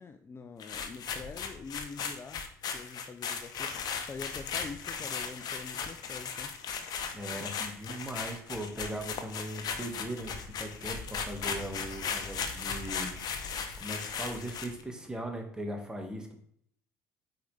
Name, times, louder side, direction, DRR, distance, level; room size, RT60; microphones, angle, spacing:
voice 1, 0.0-2.5 2.7-6.5 9.3-9.4, left 5 dB, 30° left, 7 dB, 0.5 m, -45 dB
sound 1, 0.6-14.8, left 6 dB, 50° left, 1.0 m, -37 dB
voice 2, 7.1-13.2 13.8-16.4, right 1 dB, 10° right, 2 dB, 1.8 m, -39 dB
7.7 x 4.9 x 3.4 m, 0.64 s
hypercardioid pair, 70°, 8 cm